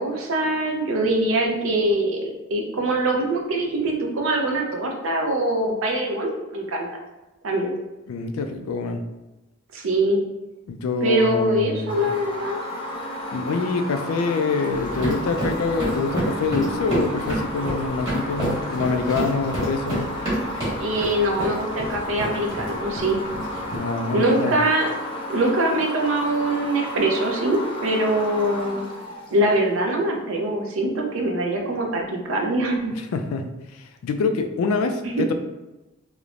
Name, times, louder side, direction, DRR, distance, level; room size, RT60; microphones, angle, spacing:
voice 1, 0.0-6.9 7.4-7.7 9.7-10.2 11.0-12.6 20.8-23.2 24.1-24.9 25.3-28.8 29.3-32.9 35.0-35.2, right 1 dB, 70° right, 1 dB, 0.5 m, -23 dB
voice 2, 8.1-9.0 10.7-12.0 13.3-20.1 23.7-24.5 33.0-33.4 34.0-35.3, left 4 dB, 90° left, 7 dB, 0.3 m, -25 dB
sound 1, 11.9-29.8, left 1 dB, 25° left, 0.5 m, -33 dB
sound 2, 14.7-23.8, right 1 dB, 20° right, 1.2 m, -29 dB
3.0 x 2.0 x 2.4 m, 1.0 s
head